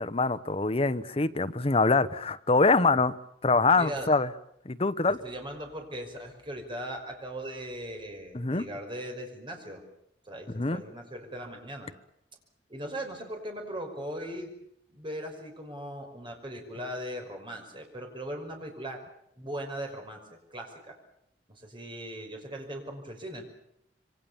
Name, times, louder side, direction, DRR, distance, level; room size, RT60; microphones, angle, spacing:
voice 1, 0.0-3.1 3.4-4.3 4.6-5.2 8.3-8.7 10.5-10.8, left 3 dB, 35° left, 11 dB, 1.0 m, -24 dB
voice 2, 3.8-4.1 5.2-9.8 10.3-11.9 12.7-14.5 14.9-19.0 19.4-20.2 20.5-21.0 21.5-23.4, right 1 dB, 30° right, 3 dB, 5.7 m, -39 dB
27.0 x 24.0 x 7.1 m, 0.74 s
head